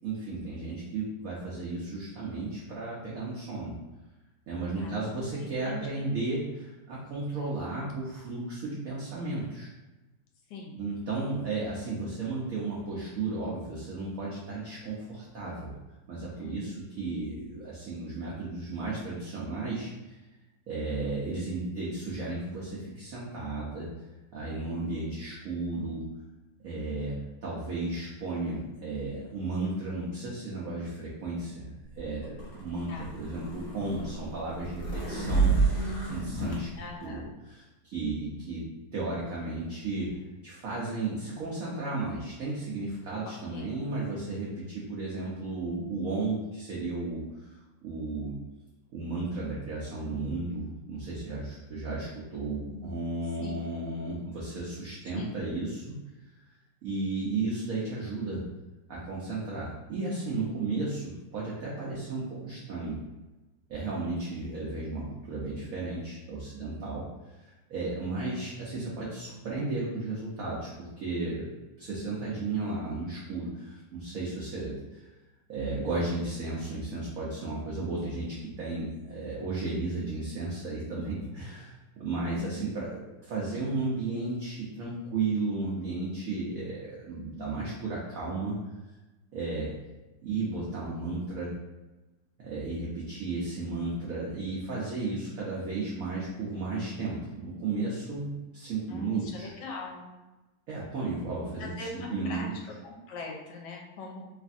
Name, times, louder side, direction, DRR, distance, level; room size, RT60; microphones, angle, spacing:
voice 1, 0.0-3.7 4.5-9.7 10.7-15.7 16.1-20.2 20.7-23.9 24.3-26.0 26.6-35.5 36.1-36.7 37.0-38.7 38.9-40.2 40.4-47.2 47.8-48.4 48.9-56.0 56.8-58.4 58.9-63.0 63.7-67.0 67.4-71.5 71.8-75.0 75.5-88.6 89.3-89.7 90.2-91.5 92.4-99.5 100.7-101.7 102.1-102.5, right 3 dB, 65° right, -6 dB, 0.8 m, -34 dB
voice 2, 4.8-6.1 10.5-10.8 16.4-16.8 24.9-25.2 32.9-33.1 36.8-37.3 43.2-43.7 52.6-53.0 53.4-53.6 55.1-55.4 82.3-82.8 98.9-100.1 101.6-104.3, left 3 dB, 75° left, 0 dB, 1.2 m, -42 dB
sound 1, 32.0-36.6, right 4 dB, 55° left, 1.3 m, -29 dB
3.2 x 2.5 x 2.5 m, 1.1 s
omnidirectional pair, 2.0 m